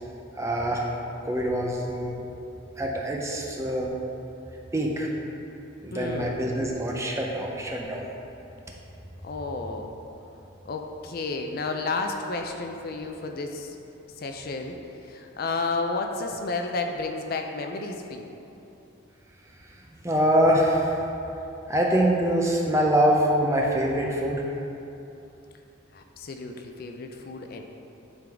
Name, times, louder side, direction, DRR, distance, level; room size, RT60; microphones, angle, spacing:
voice 1, 0.4-0.9 1.2-2.2 2.8-3.9 4.7-5.1 5.8-8.1 20.0-21.0 21.7-24.4, equal, 15° right, -1 dB, 0.6 m, -24 dB
voice 2, 5.9-6.4 9.2-9.9 10.7-13.7 14.2-14.8 15.0-18.4 25.9-27.6, left 3 dB, 50° left, 4 dB, 0.4 m, -32 dB
10.5 x 3.8 x 3.5 m, 2.9 s
head